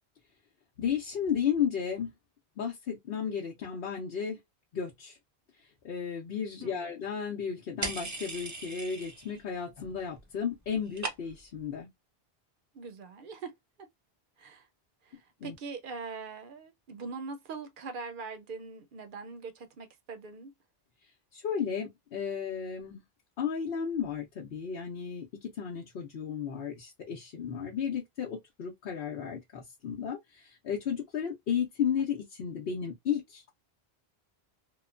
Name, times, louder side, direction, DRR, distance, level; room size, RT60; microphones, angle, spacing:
voice 1, 0.8-2.1 2.6-4.4 4.7-5.2 5.8-11.9 15.4-15.5 21.3-23.0 23.4-33.5, left 7 dB, 70° left, 0.9 m, -33 dB
voice 2, 6.6-6.9 12.7-13.5 14.4-14.7 15.0-20.5, right 4 dB, 60° right, 0.7 m, -42 dB
sound 1, 7.8-9.4 9.7-10.2 10.5-11.6, right 2 dB, 25° right, 0.4 m, -38 dB
3.0 x 2.1 x 2.4 m
omnidirectional pair, 1.0 m